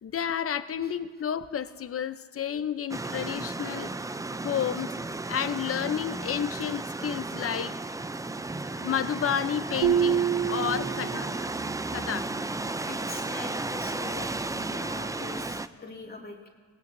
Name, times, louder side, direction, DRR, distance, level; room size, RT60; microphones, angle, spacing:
voice 1, 0.0-3.9 4.4-4.9 5.3-7.7 8.7-11.3 11.9-12.3, left 8 dB, 45° left, 12 dB, 0.7 m, -31 dB
sound 1, 2.9-15.7, right 2 dB, 10° right, 0.4 m, -34 dB
sound 2, 9.8-11.5, right 9 dB, 90° right, 0.5 m, -26 dB
voice 2, 12.9-16.5, left 3 dB, 30° left, 0 dB, 2.4 m, -42 dB
18.0 x 18.0 x 2.7 m, 1.5 s
cardioid pair, 65°, 31 cm